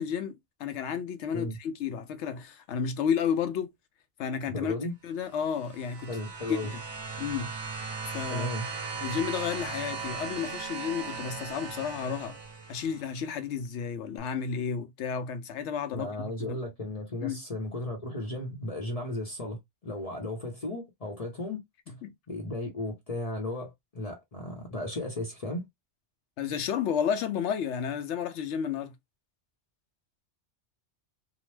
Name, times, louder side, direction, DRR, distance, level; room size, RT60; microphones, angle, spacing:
voice 1, 0.0-3.7 4.2-4.7 5.0-6.1 6.5-6.8 7.2-7.5 8.1-8.5 9.0-12.4 12.7-16.6 17.2-17.4 22.0-22.1 26.4-28.9, left 7 dB, 85° left, 0.9 m, -32 dB
voice 2, 4.5-4.9 6.1-6.7 8.3-8.7 15.9-21.6 21.9-22.0 22.3-25.7, left 1 dB, 40° left, 0.7 m, -35 dB
sound 1, 5.4-13.1 14.2-14.3, right 5 dB, 75° right, 1.0 m, -38 dB
2.8 x 2.0 x 3.1 m
omnidirectional pair, 1.1 m